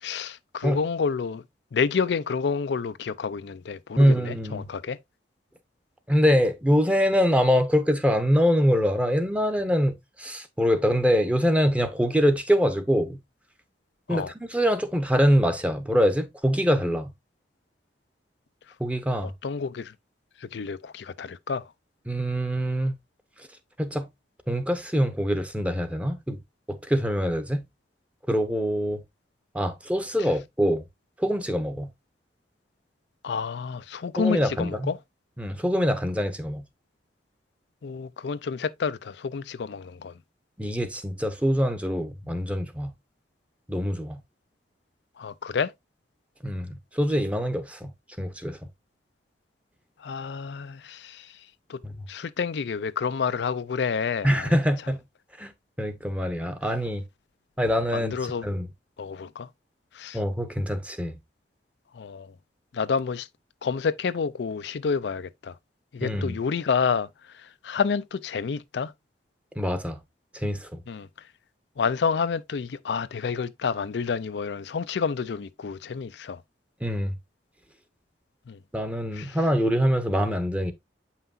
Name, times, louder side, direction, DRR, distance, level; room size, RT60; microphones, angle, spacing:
voice 1, 0.0-1.4 1.7-5.0 14.1-14.3 19.4-19.9 20.4-21.7 30.2-30.3 33.2-35.0 37.8-40.2 45.2-45.7 50.0-51.4 51.7-51.8 52.1-54.6 57.9-58.5 59.0-59.5 59.9-60.2 61.9-62.3 62.7-63.3 63.6-65.6 65.9-68.9 70.9-71.1 71.8-76.4 78.5-78.6 79.1-79.4, left 5 dB, 75° left, 0.4 m, -29 dB
voice 2, 4.0-4.7 6.1-13.2 14.1-17.1 18.8-19.3 22.1-22.9 23.8-24.1 24.5-26.4 26.7-27.6 28.3-29.0 29.5-30.8 31.2-31.9 34.2-34.9 35.4-36.6 40.6-42.9 43.7-44.2 46.4-47.9 48.2-48.6 51.8-52.0 54.2-55.0 55.4-55.5 55.8-57.1 57.6-58.1 58.4-58.7 60.1-61.1 66.0-66.4 69.6-70.0 70.3-70.8 76.8-77.2 78.7-80.7, equal, 5° right, 0.8 m, -24 dB
8.0 x 5.7 x 2.6 m
head